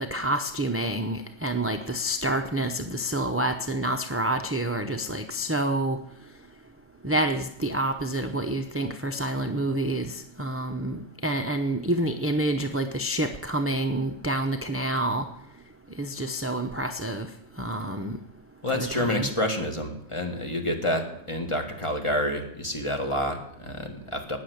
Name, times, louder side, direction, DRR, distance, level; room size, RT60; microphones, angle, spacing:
voice 1, 0.0-6.0 7.0-15.3 16.0-17.3 17.6-18.2 18.7-19.3, right 1 dB, 15° right, 5 dB, 0.6 m, -28 dB
voice 2, 18.6-24.4, left 1 dB, 25° left, 4 dB, 1.9 m, -28 dB
18.5 x 6.9 x 8.0 m, 0.74 s
omnidirectional pair, 1.3 m